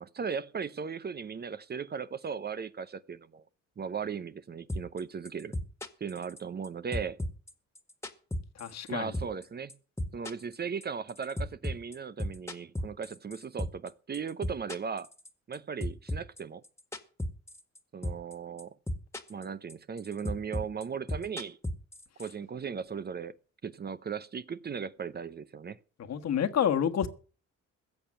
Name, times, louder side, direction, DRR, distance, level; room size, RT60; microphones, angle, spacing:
voice 1, 0.0-3.4 3.8-5.5 6.0-7.2 8.9-9.7 10.1-15.1 15.5-16.6 17.9-18.7 19.3-21.6 22.2-23.3 23.6-25.8, right 6 dB, 35° right, 0.7 m, -37 dB
sound 1, 4.7-5.0 5.3-6.7 6.9-8.9 9.1-9.4 9.7-13.9 14.1-15.6 15.8-17.8 18.0-18.3 18.6-19.4 19.7-22.3, left 1 dB, 10° left, 1.8 m, -34 dB
voice 2, 8.6-9.1 26.1-27.1, left 8 dB, 60° left, 1.5 m, -28 dB
16.0 x 6.8 x 7.5 m
cardioid pair, 90°, 30 cm